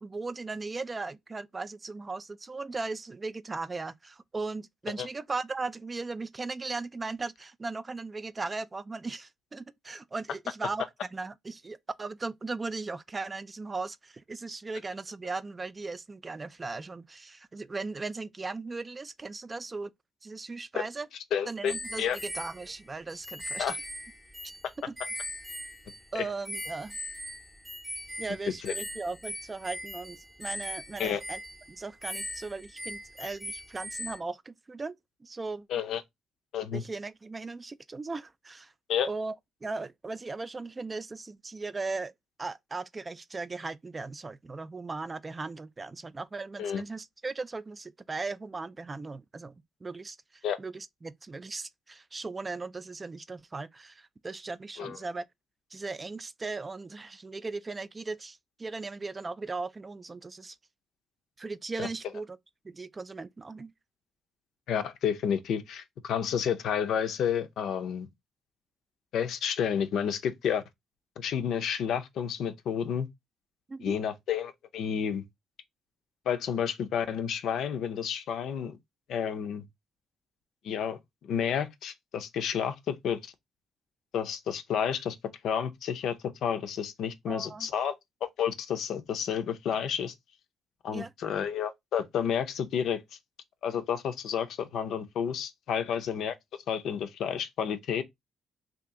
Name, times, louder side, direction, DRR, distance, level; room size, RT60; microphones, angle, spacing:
voice 1, 0.0-10.8 11.1-19.9 20.2-21.1 21.5-23.7 24.8-24.9 26.1-27.0 28.2-31.4 31.7-34.9 35.2-35.7 36.7-38.7 39.1-39.3 39.6-42.1 42.4-55.2 55.7-60.6 61.4-62.4 62.6-63.7 73.7-74.0 87.3-87.7 90.9-91.1, right 3 dB, 25° right, 0.3 m, -38 dB
voice 2, 21.3-22.2 23.6-23.8 26.1-26.2 28.6-28.7 31.0-31.2 35.7-36.0 36.5-36.8 38.9-39.1 46.6-46.8 50.4-50.6 54.8-55.0 61.8-61.9 64.7-68.1 69.1-70.6 71.2-73.1 73.8-75.2 76.3-78.8 79.1-79.6 80.6-83.2 84.1-85.2 85.4-86.2 86.4-87.9 88.2-90.1 90.8-93.0 93.6-96.3 96.7-98.0, left 8 dB, 75° left, 0.5 m, -30 dB
sound 1, 21.7-26.2 26.4-34.2, equal, 5° right, 0.7 m, -40 dB
2.8 x 2.4 x 3.5 m
cardioid pair, 90°, 0 cm